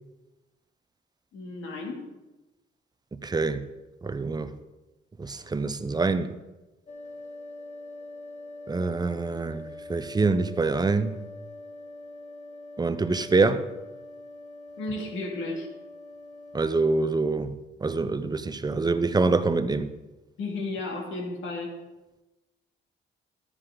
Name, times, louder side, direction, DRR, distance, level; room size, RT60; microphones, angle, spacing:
voice 1, 1.3-2.1 14.8-15.7 20.4-21.7, left 2 dB, 75° left, 2.7 m, -33 dB
voice 2, 3.1-3.6 4.0-4.5 5.2-6.4 8.7-11.2 12.8-13.6 16.5-17.5 17.8-19.9, right 3 dB, 20° right, 0.7 m, -25 dB
sound 1, 6.9-16.6, left 2 dB, 35° left, 1.2 m, -44 dB
12.5 x 9.7 x 3.9 m
cardioid pair, 90°, 20 cm